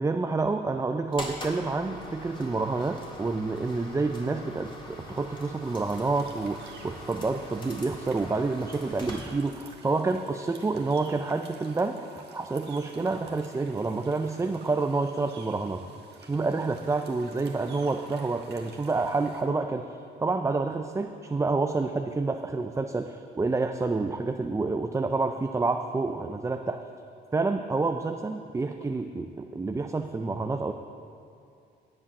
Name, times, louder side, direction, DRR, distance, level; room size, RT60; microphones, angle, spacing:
voice 1, 0.0-15.8 16.2-19.9 20.2-26.8 27.3-30.7, right 3 dB, 15° right, 6 dB, 0.4 m, -28 dB
sound 1, 1.1-9.8, left 1 dB, 25° left, 2.0 m, -43 dB
sound 2, 5.6-19.4, right 4 dB, 55° right, 1.5 m, -51 dB
9.9 x 7.4 x 5.9 m, 2.5 s
cardioid pair, 90°, 20 cm